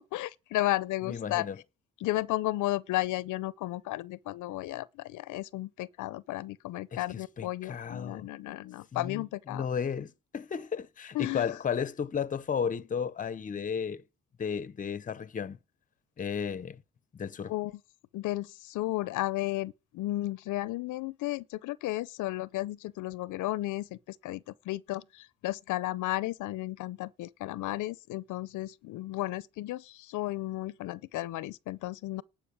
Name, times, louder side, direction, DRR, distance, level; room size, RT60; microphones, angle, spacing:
voice 1, 0.0-1.5 2.0-9.7 11.1-11.5 17.5-17.7 18.1-32.2, left 17 dB, 80° left, 0.5 m, -33 dB
voice 2, 1.1-1.6 6.9-7.0 7.4-8.3 8.9-14.0 14.4-15.6 16.2-16.8 17.1-17.5, left 7 dB, 25° left, 0.6 m, -34 dB
12.0 x 5.1 x 8.7 m
cardioid pair, 90°, 30 cm